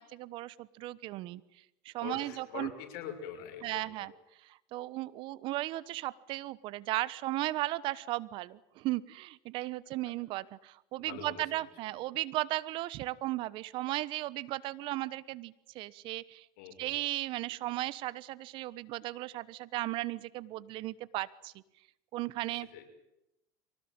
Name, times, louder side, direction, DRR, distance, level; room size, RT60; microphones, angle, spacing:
voice 1, 0.0-1.4 1.8-2.7 3.6-4.1 4.4-16.5 16.8-21.5 22.1-22.7, right 17 dB, 60° right, 19 dB, 1.2 m, -36 dB
voice 2, 2.0-4.1 11.0-11.9 16.6-17.0 22.5-22.8, left 9 dB, 70° left, 4 dB, 6.3 m, -45 dB
24.0 x 19.0 x 8.9 m, 0.87 s
supercardioid pair, 100°, 10 cm